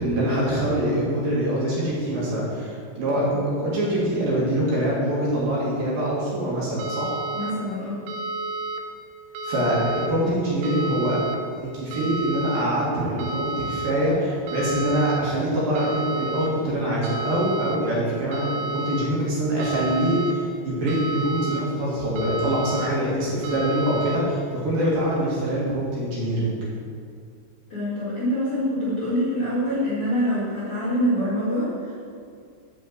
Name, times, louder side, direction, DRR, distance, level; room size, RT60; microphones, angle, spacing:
voice 1, 0.0-7.1 9.4-11.2 11.5-26.6, right 1 dB, 55° right, -6 dB, 3.3 m, -24 dB
sound 1, 6.8-7.5 8.1-8.8 9.4-10.1 10.6-11.4 11.9-12.6 13.2-13.9 14.5-15.2 15.8-16.5 17.0-17.8 18.3-19.1 19.6-20.3 20.9-21.6 22.2-22.9 23.4-24.2, right 2 dB, 80° right, 2.7 m, -31 dB
voice 2, 7.3-8.0 27.7-31.9, equal, 50° left, -9 dB, 1.8 m, -25 dB
7.4 x 6.4 x 7.7 m, 2.2 s
omnidirectional pair, 5.4 m